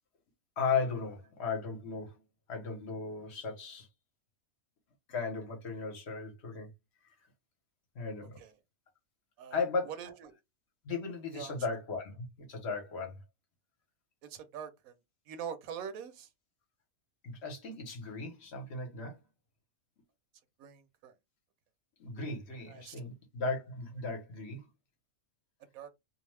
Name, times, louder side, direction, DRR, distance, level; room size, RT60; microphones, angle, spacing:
voice 1, 0.6-2.2 2.5-3.9 5.1-6.7 8.0-8.4 9.5-9.9 10.8-13.2 17.2-19.2 22.0-24.7, left 4 dB, 55° left, 0.9 m, -36 dB
voice 2, 9.4-10.4 11.3-11.5 14.2-14.9 15.3-16.3 20.6-21.1 22.7-23.0 25.7-25.9, right 8 dB, 85° right, 1.0 m, -44 dB
2.7 x 2.0 x 3.1 m
omnidirectional pair, 1.4 m